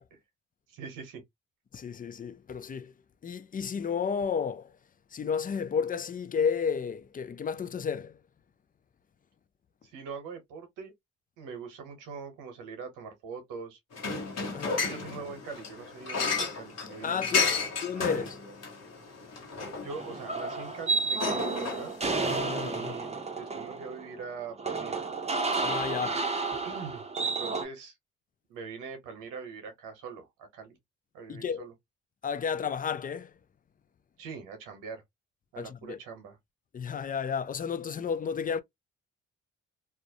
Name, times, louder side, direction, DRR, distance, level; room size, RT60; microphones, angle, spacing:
voice 1, 0.7-1.2 9.8-10.9 11.4-13.8 14.8-18.3 19.8-22.0 22.6-25.0 26.6-28.0 28.5-30.8 31.1-31.7 34.2-35.0 35.5-36.4, right 5 dB, 85° right, 0.9 m, -43 dB
voice 2, 1.7-2.9 3.2-4.7 5.1-8.2 14.5-14.8 17.0-17.5 17.8-18.4 22.2-23.0 25.6-26.2 31.3-31.7 32.2-33.3 35.6-36.0 36.7-38.6, left 6 dB, 30° left, 0.4 m, -32 dB
sound 1, 13.9-22.4, left 4 dB, 55° left, 1.1 m, -33 dB
sound 2, 19.9-27.7, right 3 dB, 20° right, 0.7 m, -31 dB
2.3 x 2.1 x 2.7 m
supercardioid pair, 50°, 30 cm